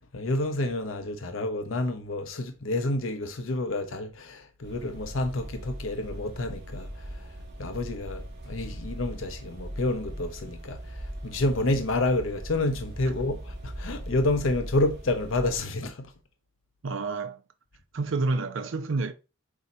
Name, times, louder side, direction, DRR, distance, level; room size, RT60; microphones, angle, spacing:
voice 1, 0.1-6.9 7.6-16.1, left 2 dB, 80° left, 0.8 m, -29 dB
sound 1, 4.6-15.6, right 1 dB, 55° right, 3.3 m, -40 dB
voice 2, 16.8-17.4 17.9-19.1, right 3 dB, 70° right, 0.5 m, -29 dB
8.2 x 2.8 x 4.2 m
head